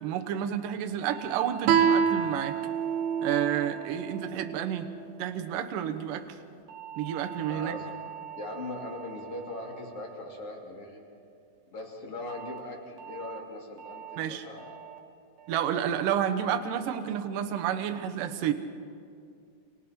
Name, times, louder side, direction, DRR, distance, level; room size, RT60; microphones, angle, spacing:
voice 1, 0.0-2.6 3.2-4.9 5.2-6.4 7.0-7.8 14.2-14.4 15.5-18.5, right 9 dB, 70° right, 7 dB, 2.2 m, -30 dB
sound 1, 1.1-5.5 6.7-11.1 12.3-12.6 13.0-13.4 13.8-14.2 14.6-15.0 15.4-15.8 16.2-16.6, right 10 dB, 50° right, 2.9 m, -44 dB
Guitar, 1.7-4.9, right 7 dB, 85° right, 3.5 m, -27 dB
voice 2, 7.5-7.9 8.4-11.0 11.7-14.7, left 2 dB, 35° left, 0 dB, 3.3 m, -40 dB
30.0 x 26.5 x 4.4 m, 2.4 s
omnidirectional pair, 5.3 m